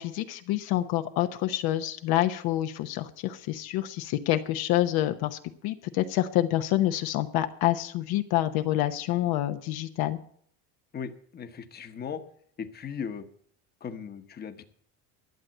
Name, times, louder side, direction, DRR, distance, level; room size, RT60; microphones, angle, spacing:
voice 1, 0.0-10.2, left 14 dB, 65° left, 8 dB, 0.9 m, -27 dB
voice 2, 10.9-12.2 12.6-13.3 13.8-14.6, left 7 dB, 25° left, 8 dB, 1.1 m, -37 dB
12.0 x 7.5 x 7.8 m, 0.62 s
cardioid pair, 135°, 41 cm